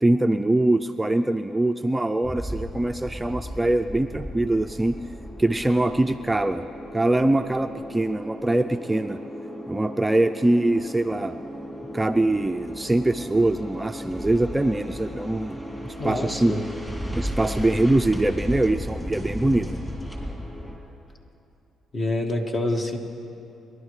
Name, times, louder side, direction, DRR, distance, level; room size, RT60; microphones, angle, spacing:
voice 1, 0.0-5.0 5.4-6.6 6.9-9.2 9.7-11.4 11.9-15.6 15.8-16.6 17.1-19.7, right 1 dB, 15° right, 8 dB, 0.4 m, -23 dB
sound 1, 2.2-20.8, equal, 10° left, 3.5 m, -35 dB
voice 2, 16.0-16.6 21.9-23.0, left 1 dB, 40° left, 3 dB, 1.8 m, -26 dB
26.5 x 11.5 x 3.2 m, 2.9 s
supercardioid pair, 65°, 0 cm